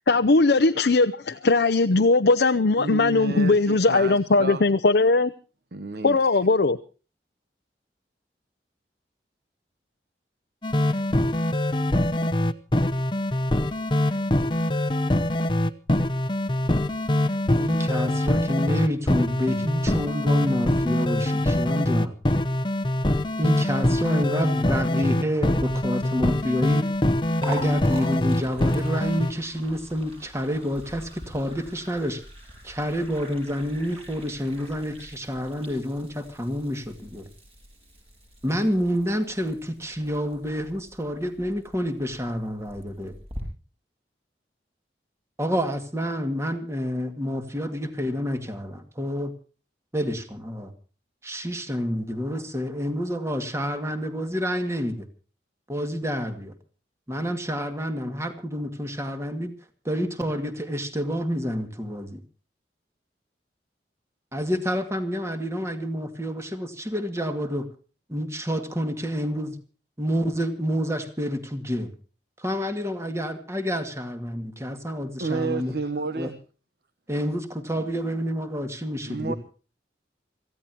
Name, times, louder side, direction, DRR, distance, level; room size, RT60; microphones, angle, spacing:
voice 1, 0.1-5.3 6.0-6.8, left 3 dB, 70° left, 0.7 m, -19 dB
voice 2, 2.8-4.6 5.7-6.2 75.2-76.4 79.1-79.3, right 3 dB, 60° right, 1.1 m, -31 dB
sound 1, 10.6-29.3, left 1 dB, 30° left, 0.8 m, -24 dB
voice 3, 17.6-22.1 23.4-26.9 27.4-32.2 32.6-37.3 38.4-43.1 45.4-49.3 49.9-50.7 51.2-55.1 55.7-56.5 57.1-59.5 59.8-62.2 64.3-67.7 68.1-69.6 70.0-71.9 72.4-75.7 76.1-76.3 77.1-79.4, equal, 15° right, 2.1 m, -28 dB
Liquid, 25.4-43.4, equal, 35° right, 8.0 m, -43 dB
26.0 x 15.5 x 2.9 m
head